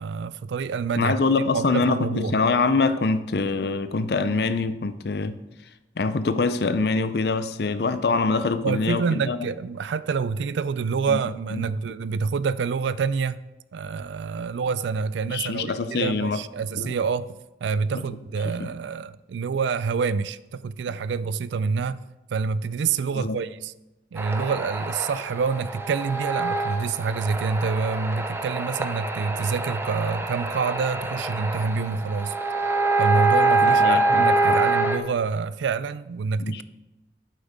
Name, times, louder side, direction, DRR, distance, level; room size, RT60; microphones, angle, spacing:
voice 1, 0.0-1.2 1.5-2.4 8.6-13.4 13.7-22.0 22.3-23.7 24.1-32.4 33.0-36.6, right 5 dB, 75° right, 0.3 m, -27 dB
voice 2, 1.0-5.4 6.0-9.5 11.1-11.2 11.5-11.7 15.3-16.4 16.7-17.0 17.9-18.0 18.4-18.7 23.1-23.4 33.6-34.6 36.4-36.6, left 3 dB, 55° left, 0.5 m, -25 dB
sound 1, 24.2-35.0, right 2 dB, 15° right, 0.5 m, -25 dB
8.9 x 7.6 x 3.5 m
head